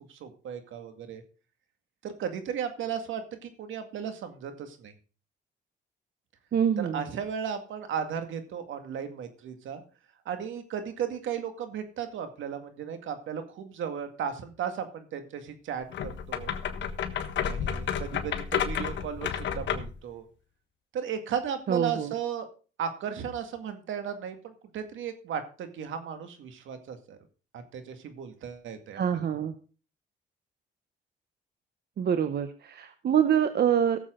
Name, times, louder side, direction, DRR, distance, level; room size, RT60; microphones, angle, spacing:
voice 1, 0.1-1.2 2.0-4.9 6.8-9.8 10.3-16.5 17.4-20.3 20.9-22.5 22.8-27.2 27.5-29.3, right 7 dB, 75° right, 8 dB, 2.1 m, -35 dB
voice 2, 6.5-7.0 21.7-22.1 28.9-29.5 32.0-34.0, right 8 dB, 55° right, 9 dB, 1.0 m, -25 dB
sound 1, 15.9-20.0, left 8 dB, 70° left, 1.4 m, -31 dB
17.0 x 7.4 x 3.8 m, 0.36 s
cardioid pair, 90°, 20 cm